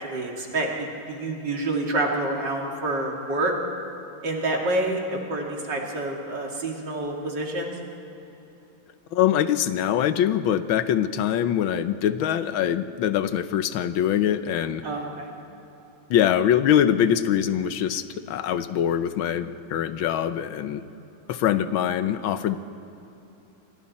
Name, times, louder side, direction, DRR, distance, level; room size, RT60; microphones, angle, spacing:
voice 1, 0.0-3.5 4.2-7.7 14.8-15.3, right 2 dB, 60° right, 0 dB, 3.0 m, -28 dB
voice 2, 9.1-14.8 16.1-20.9 21.3-22.6, left 10 dB, 80° left, 11 dB, 1.6 m, -23 dB
28.0 x 22.5 x 4.3 m, 3.0 s
omnidirectional pair, 2.2 m